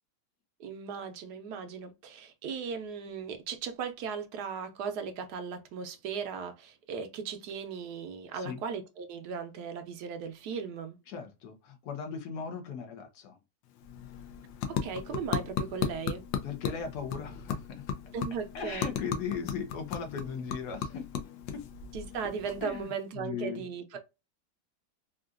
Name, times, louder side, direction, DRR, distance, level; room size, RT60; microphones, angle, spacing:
voice 1, 0.6-11.0 14.7-16.2 18.1-18.9 21.9-24.0, right 6 dB, 70° right, 1.2 m, -37 dB
voice 2, 11.1-13.4 16.4-17.9 18.5-21.3 21.5-21.6 22.6-23.7, left 6 dB, 70° left, 1.1 m, -38 dB
sound 1, 13.6-23.1, left 7 dB, 85° left, 1.3 m, -37 dB
3.8 x 2.4 x 2.3 m
omnidirectional pair, 1.9 m